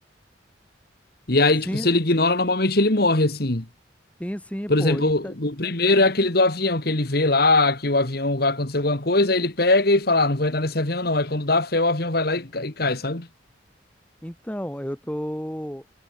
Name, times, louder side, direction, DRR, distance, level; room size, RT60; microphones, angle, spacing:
voice 1, 1.3-3.7 4.7-13.3, left 2 dB, 50° left, 2.1 m, -21 dB
voice 2, 4.2-5.3 14.2-15.9, equal, 5° left, 1.9 m, -31 dB
head